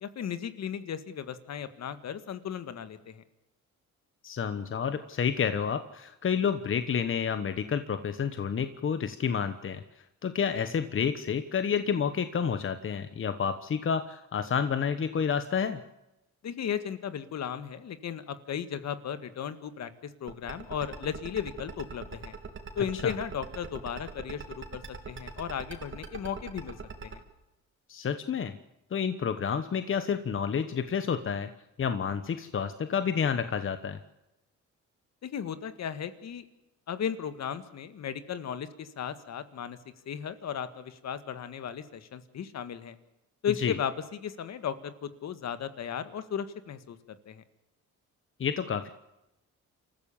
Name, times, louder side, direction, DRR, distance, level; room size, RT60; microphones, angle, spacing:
voice 1, 0.0-3.2 16.4-22.3 22.8-26.8 27.0-27.2 35.2-36.5 36.9-39.8 40.1-43.0 43.4-43.9 44.2-47.4, left 8 dB, 60° left, 12 dB, 1.8 m, -35 dB
voice 2, 4.2-9.8 10.2-15.8 22.9-23.1 27.9-28.6 28.9-31.5 31.8-34.0 43.6-43.8 48.4-48.9, left 7 dB, 45° left, 11 dB, 1.2 m, -29 dB
sound 1, 20.3-27.2, right 5 dB, 40° right, 3.3 m, -40 dB
27.0 x 14.5 x 7.3 m, 0.93 s
cardioid pair, 90°, 30 cm